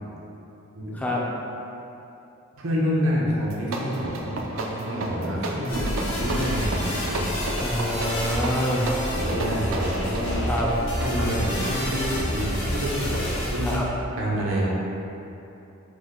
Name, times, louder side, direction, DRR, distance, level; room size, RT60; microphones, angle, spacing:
voice 1, 2.6-7.3 9.1-10.5 11.0-13.7 14.2-14.7, equal, 85° right, -4 dB, 0.8 m, -27 dB
sound 1, 3.4-13.7, right 2 dB, 70° right, 0.4 m, -33 dB
sound 2, 5.7-13.8, equal, 75° left, 1.0 m, -29 dB
voice 2, 7.6-8.9 10.5-10.7 13.6-13.9, equal, 5° left, -4 dB, 0.3 m, -26 dB
4.9 x 2.2 x 3.6 m, 2.9 s
head